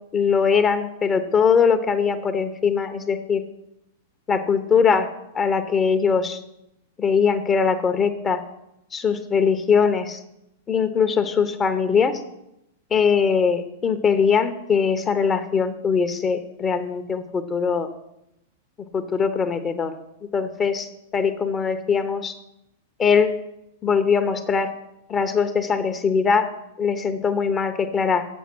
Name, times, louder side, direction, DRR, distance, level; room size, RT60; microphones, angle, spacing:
voice 1, 0.1-3.4 4.3-5.1 5.3-6.4 7.0-8.4 8.9-10.2 10.7-12.2 12.9-17.9 18.9-19.9 20.3-20.9 21.1-22.3 23.0-23.3 23.8-24.7 25.1-26.5 26.8-28.3, left 6 dB, 25° left, 9 dB, 0.8 m, -21 dB
7.1 x 7.0 x 6.1 m, 0.85 s
hypercardioid pair, 115°, 0 cm